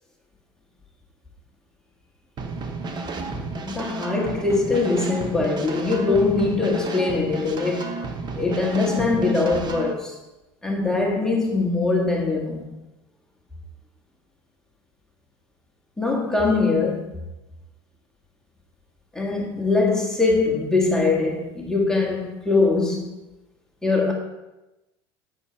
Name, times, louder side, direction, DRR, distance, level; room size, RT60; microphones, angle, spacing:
sound 1, 2.4-9.9, right 3 dB, 35° right, 1.0 m, -32 dB
voice 1, 3.7-7.9 8.4-10.2 10.6-12.7 16.0-17.1 19.1-23.1 23.8-24.1, left 3 dB, 5° left, 1.7 m, -22 dB
8.2 x 7.1 x 4.5 m
supercardioid pair, 110°, 13 cm